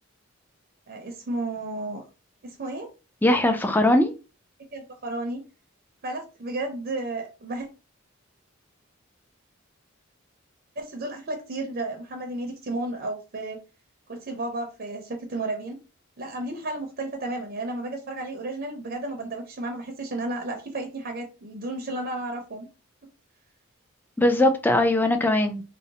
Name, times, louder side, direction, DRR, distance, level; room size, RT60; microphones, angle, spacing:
voice 1, 0.9-2.0 2.4-2.9 4.7-5.4 6.0-7.7 10.8-13.6 14.1-15.8 16.2-22.7, right 2 dB, 45° right, 0.5 m, -32 dB
voice 2, 3.2-4.1 24.2-25.6, left 1 dB, 10° left, 0.3 m, -20 dB
3.7 x 2.0 x 2.7 m
head